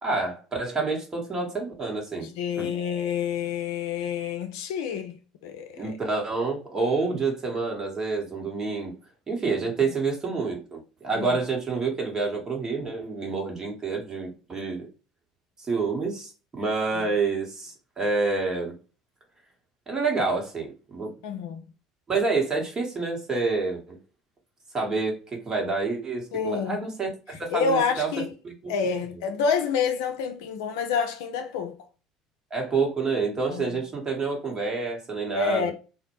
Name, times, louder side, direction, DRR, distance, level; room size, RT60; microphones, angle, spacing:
voice 1, 0.0-2.3 2.6-2.7 5.7-8.9 9.3-14.9 15.6-18.8 19.9-21.2 22.1-24.0 24.7-27.1 27.4-28.1 28.4-28.7 32.5-35.7, right 4 dB, 30° right, 1.1 m, -28 dB
voice 2, 2.2-6.0 11.1-11.4 17.0-17.1 21.2-21.6 26.3-26.8 27.3-28.3 28.7-31.8 33.5-33.8 35.3-35.7, left 6 dB, 75° left, 0.4 m, -28 dB
2.2 x 2.1 x 2.9 m
hypercardioid pair, 70°, 2 cm